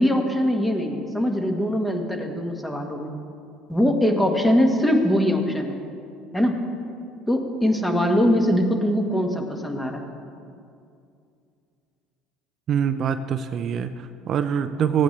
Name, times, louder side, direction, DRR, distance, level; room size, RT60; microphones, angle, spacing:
voice 1, 0.0-3.1 3.7-5.8 6.3-6.5 7.3-10.0, equal, 10° left, 3 dB, 1.4 m, -22 dB
voice 2, 12.7-15.0, right 8 dB, 50° right, 10 dB, 0.4 m, -24 dB
16.0 x 9.0 x 3.2 m, 2.4 s
supercardioid pair, 85°, 0 cm